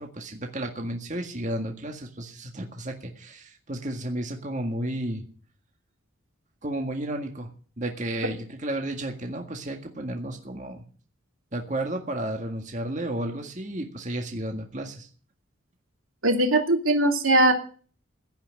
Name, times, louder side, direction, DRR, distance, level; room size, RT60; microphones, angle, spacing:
voice 1, 0.0-5.2 6.6-7.5 7.8-10.8 11.5-15.1, right 1 dB, 35° right, 2 dB, 1.8 m, -32 dB
voice 2, 16.2-17.5, right 1 dB, 90° right, 3 dB, 2.7 m, -20 dB
16.0 x 6.0 x 9.8 m, 0.42 s
head